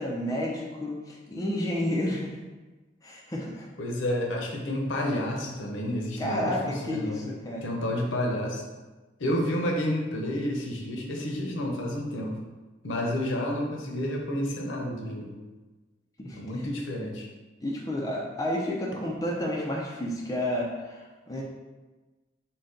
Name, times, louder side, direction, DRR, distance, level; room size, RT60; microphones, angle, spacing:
voice 1, 0.0-2.4 3.0-3.7 6.2-7.6 16.2-16.6 17.6-21.4, left 1 dB, 20° left, -2 dB, 0.4 m, -31 dB
voice 2, 3.8-6.5 6.8-7.2 7.6-8.6 9.2-12.4 12.8-15.4 16.4-17.3, left 1 dB, 85° left, 0 dB, 0.7 m, -30 dB
3.9 x 2.2 x 3.7 m, 1.2 s
head